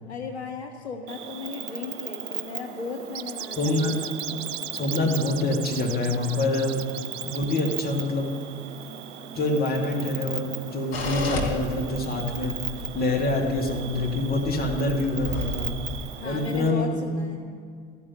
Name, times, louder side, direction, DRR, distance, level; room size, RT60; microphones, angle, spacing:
voice 1, 0.1-4.1 15.9-17.4, left 4 dB, 85° left, 3 dB, 1.0 m, -36 dB
Cricket, 1.1-16.7, right 9 dB, 50° right, 1.2 m, -38 dB
sound 1, 3.1-8.1, right 10 dB, 70° right, 0.6 m, -38 dB
voice 2, 3.6-4.0 4.7-6.9 7.2-8.3 9.3-12.6 12.9-15.8 16.2-16.9, left 2 dB, 30° left, 1 dB, 2.3 m, -26 dB
sound 2, 10.9-16.0, left 1 dB, 65° left, 2.5 m, -33 dB
13.5 x 5.3 x 8.9 m, 2.1 s
figure-of-eight pair, 70°, 32 cm